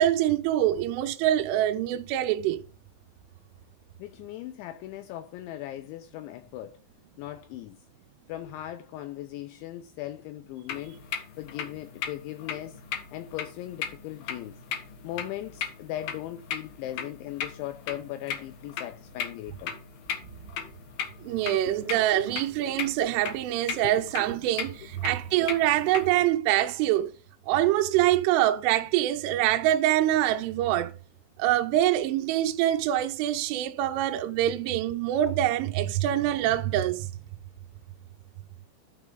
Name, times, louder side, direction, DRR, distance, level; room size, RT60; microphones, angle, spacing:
voice 1, 0.0-2.6 21.2-27.1 27.5-30.9 31.4-37.1, right 13 dB, 80° right, 3.0 m, -25 dB
voice 2, 4.0-6.8 7.2-7.8 8.3-11.0 11.4-12.8 13.1-14.6 15.0-19.7 21.7-21.8 22.2-22.3 23.8-24.0, left 14 dB, 85° left, 2.7 m, -38 dB
sound 1, 10.7-26.3, left 7 dB, 70° left, 2.4 m, -38 dB
12.0 x 4.9 x 3.7 m
omnidirectional pair, 5.9 m